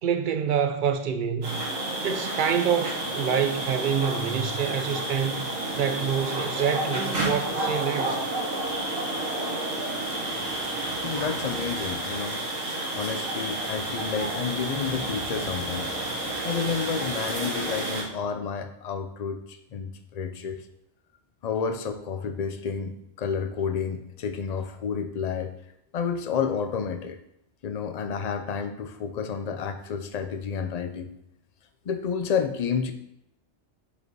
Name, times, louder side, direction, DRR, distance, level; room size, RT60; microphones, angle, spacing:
voice 1, 0.0-1.6 2.0-5.5 5.7-8.2, right 7 dB, 50° right, 0.6 m, -26 dB
sound 1, 1.4-18.0, right 1 dB, 90° right, 1.8 m, -30 dB
voice 2, 11.0-12.4 12.9-15.9 16.4-20.6 21.4-25.6 25.9-27.2 27.6-31.1 31.9-32.9, left 6 dB, 50° left, 0.5 m, -30 dB
5.1 x 4.9 x 4.6 m
omnidirectional pair, 1.3 m